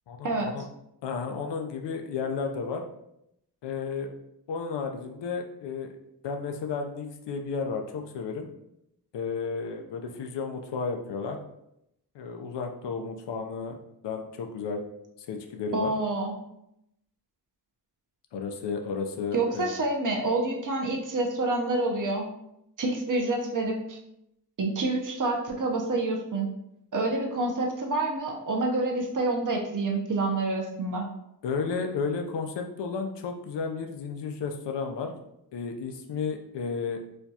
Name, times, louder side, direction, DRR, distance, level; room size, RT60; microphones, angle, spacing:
voice 1, 0.1-0.6 1.0-2.8 3.6-4.1 4.5-5.9 6.2-8.5 9.1-11.4 12.1-13.8 14.0-14.8 15.2-15.9 18.3-19.7 31.4-35.2 35.5-37.0, left 5 dB, 85° left, 4 dB, 0.5 m, -33 dB
voice 2, 15.7-16.3 19.3-22.3 22.8-24.0 24.6-26.5 26.9-31.0, right 2 dB, 50° right, 1 dB, 0.7 m, -27 dB
4.3 x 2.3 x 2.7 m, 0.81 s
wide cardioid pair, 115°, 41 cm